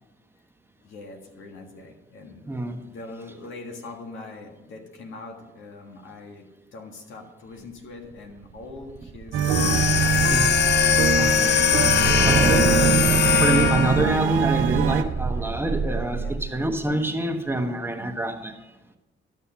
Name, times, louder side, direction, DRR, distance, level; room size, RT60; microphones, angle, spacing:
voice 1, 0.8-2.4 2.8-10.4 10.8-11.0 16.2-16.4, left 3 dB, 80° left, 2 dB, 1.8 m, -43 dB
sound 1, 8.4-16.8, right 6 dB, 30° right, 0.4 m, -28 dB
sound 2, 9.3-15.0, right 7 dB, 80° right, 0.6 m, -24 dB
sound 3, 9.4-14.2, left 9 dB, 60° left, 0.6 m, -21 dB
voice 2, 10.9-12.9 13.2-18.6, right 1 dB, 10° right, 4 dB, 1.1 m, -27 dB
11.5 x 6.8 x 5.6 m, 1.0 s
cardioid pair, 90°, 20 cm